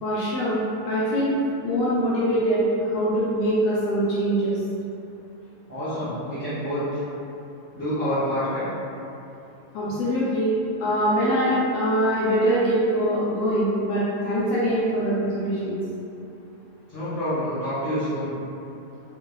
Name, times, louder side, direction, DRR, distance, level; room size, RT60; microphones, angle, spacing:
voice 1, 0.0-0.6 0.9-1.4 1.6-4.6 9.7-10.5 10.8-15.8, equal, 85° left, -9 dB, 1.4 m, -23 dB
voice 2, 5.7-7.0 7.7-8.7 16.9-18.3, equal, 65° left, -16 dB, 1.2 m, -27 dB
4.7 x 2.1 x 2.2 m, 2.7 s
omnidirectional pair, 3.4 m